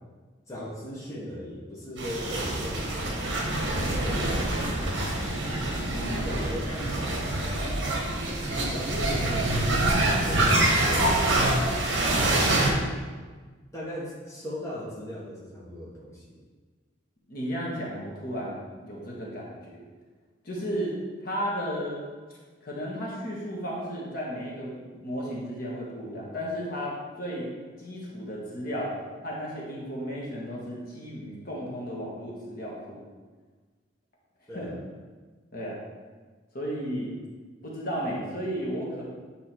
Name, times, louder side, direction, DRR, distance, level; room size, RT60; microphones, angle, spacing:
voice 1, 0.5-3.3 3.8-4.9 6.0-7.8 8.5-11.6 12.0-12.8 13.7-16.4 34.5-34.8, equal, 15° left, -6 dB, 1.4 m, -39 dB
sound 1, 2.0-12.7, right 1 dB, 65° right, 1.5 m, -26 dB
voice 2, 5.9-6.2 17.3-19.9 20.4-20.9 21.2-22.0 22.6-24.8 25.0-27.5 27.8-29.0 29.2-33.0 34.5-34.7 35.5-35.8 36.5-37.1 37.6-39.0, equal, 50° left, -4 dB, 1.6 m, -34 dB
8.8 x 3.9 x 4.5 m, 1.4 s
head